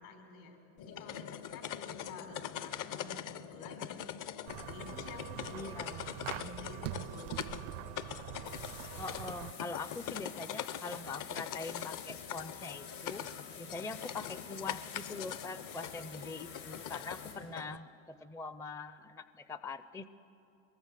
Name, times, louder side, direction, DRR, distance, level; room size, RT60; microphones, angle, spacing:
voice 1, 0.0-4.1 4.7-5.9 6.3-7.7, left 3 dB, 70° left, 3 dB, 5.5 m, -50 dB
sound 1, 0.8-17.8, left 9 dB, 50° left, 0.8 m, -43 dB
sound 2, 4.5-9.5, right 19 dB, 65° right, 0.5 m, -44 dB
voice 2, 5.5-6.1 9.0-20.1, left 3 dB, 10° left, 13 dB, 0.4 m, -43 dB
sound 3, 8.4-17.3, left 6 dB, 90° left, 6.0 m, -49 dB
23.5 x 22.0 x 6.8 m, 2.8 s
supercardioid pair, 100°, 42 cm